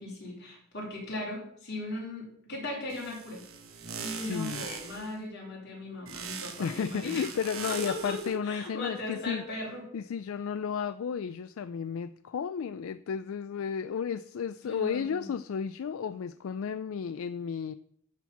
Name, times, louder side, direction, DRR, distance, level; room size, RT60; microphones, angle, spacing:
voice 1, 0.0-3.4 4.0-7.3 7.7-9.8 14.6-15.3, left 1 dB, 55° left, -3 dB, 4.0 m, -38 dB
sound 1, 2.9-5.1 6.1-8.4, right 6 dB, 80° right, 1.2 m, -41 dB
voice 2, 4.2-4.7 6.6-9.4 9.9-17.7, left 7 dB, 75° left, 14 dB, 0.4 m, -33 dB
10.5 x 4.4 x 7.0 m, 0.67 s
head